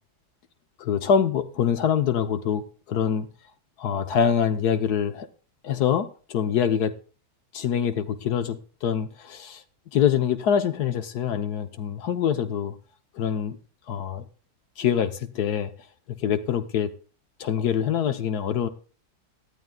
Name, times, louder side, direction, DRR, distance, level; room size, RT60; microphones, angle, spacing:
voice 1, 0.8-3.3 3.8-5.3 5.6-6.9 7.5-9.6 9.9-12.7 13.2-13.6 13.9-14.2 14.8-15.7 16.2-16.9 17.4-18.7, left 8 dB, 80° left, 1.5 m, -25 dB
18.5 x 12.5 x 2.3 m
omnidirectional pair, 1.7 m